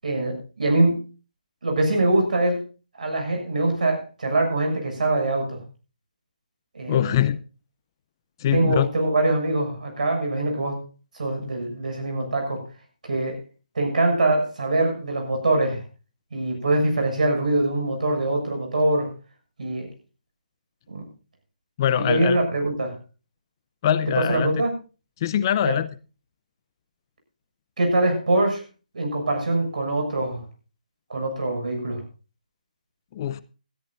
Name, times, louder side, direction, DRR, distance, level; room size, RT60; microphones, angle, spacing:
voice 1, 0.0-1.0 1.6-2.6 3.0-5.6 6.7-7.3 8.5-10.8 11.1-12.6 13.0-13.4 13.8-15.8 16.3-19.1 19.6-19.9 20.9-21.0 21.9-22.9 24.2-24.7 25.6-25.8 27.8-28.6 28.9-30.4 31.1-32.0, right 2 dB, 65° right, 3 dB, 7.0 m, -23 dB
voice 2, 6.9-7.4 8.4-8.9 21.8-22.4 23.8-24.6 25.2-25.9 33.1-33.4, left 10 dB, 30° left, 14 dB, 0.6 m, -23 dB
19.0 x 13.5 x 2.6 m, 0.34 s
figure-of-eight pair, 155°, 4 cm